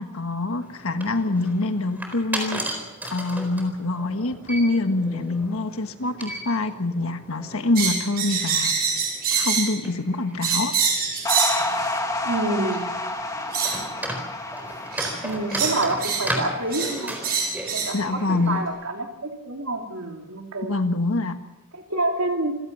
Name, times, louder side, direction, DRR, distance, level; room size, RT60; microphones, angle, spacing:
voice 1, 0.0-2.6 3.1-8.9 9.3-10.7 17.9-18.6 20.6-21.4, left 2 dB, 70° left, 8 dB, 1.6 m, -25 dB
sound 1, 0.6-18.6, right 1 dB, 10° right, 4.2 m, -36 dB
sound 2, 7.8-9.7 10.4-11.6 12.7-12.8 13.5-13.8 14.9-15.1 15.5-16.3 16.7-16.9 17.2-17.9, right 6 dB, 45° right, 7.1 m, -24 dB
sound 3, 11.2-17.7, left 2 dB, 15° left, 2.2 m, -30 dB
voice 2, 12.2-12.9 15.2-17.2 17.7-20.8 21.7-22.6, right 2 dB, 70° right, 2 dB, 3.4 m, -28 dB
27.0 x 17.0 x 5.6 m, 1.0 s
head